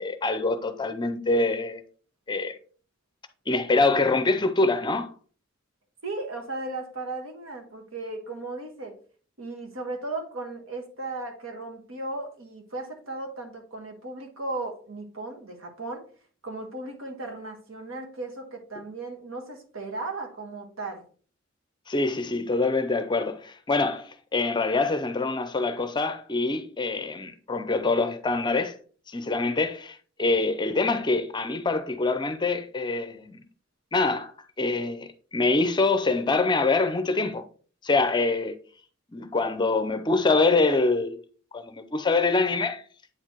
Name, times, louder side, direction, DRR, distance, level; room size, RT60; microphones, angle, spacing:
voice 1, 0.0-1.8 2.3-2.6 3.5-5.1 21.9-28.8 29.1-33.4 33.9-34.3 34.6-37.4 37.8-38.6 39.1-41.2 41.5-42.8, left 3 dB, 20° left, 0.5 m, -25 dB
voice 2, 6.0-8.9 9.4-16.1 16.4-21.1, right 2 dB, 85° right, 1.5 m, -36 dB
8.6 x 4.7 x 2.9 m
head